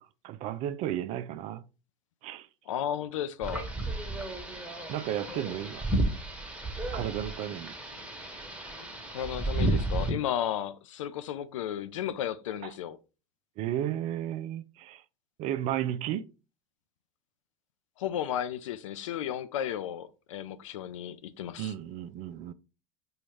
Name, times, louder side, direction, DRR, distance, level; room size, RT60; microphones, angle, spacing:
voice 1, 0.0-1.7 2.2-2.5 4.9-5.9 6.9-7.7 12.6-12.7 13.6-15.0 15.4-16.3 21.6-22.5, right 11 dB, 40° right, 0.4 m, -33 dB
voice 2, 2.7-3.7 9.1-13.0 18.0-21.7, left 10 dB, 70° left, 0.4 m, -34 dB
sound 1, 3.4-10.1, right 2 dB, 5° right, 1.0 m, -32 dB
4.9 x 2.3 x 3.2 m
hypercardioid pair, 85°, 17 cm